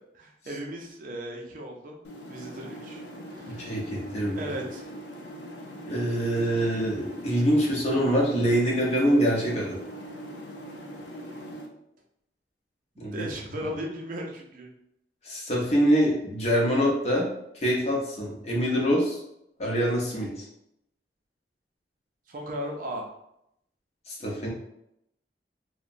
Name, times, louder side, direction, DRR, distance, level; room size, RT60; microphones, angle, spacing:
voice 1, 0.1-2.0 2.3-3.0 3.3-3.7 4.4-4.9 11.3-11.5 13.0-14.7 22.3-23.1, equal, 50° right, 0 dB, 0.5 m, -36 dB
sound 1, 2.0-11.7, equal, 80° left, 0.4 m, -41 dB
voice 2, 3.4-4.5 5.9-9.8 13.0-13.3 15.2-17.3 17.5-19.2 19.6-20.5 24.1-24.5, equal, 35° left, -3 dB, 0.7 m, -25 dB
2.8 x 2.1 x 2.5 m, 0.79 s
head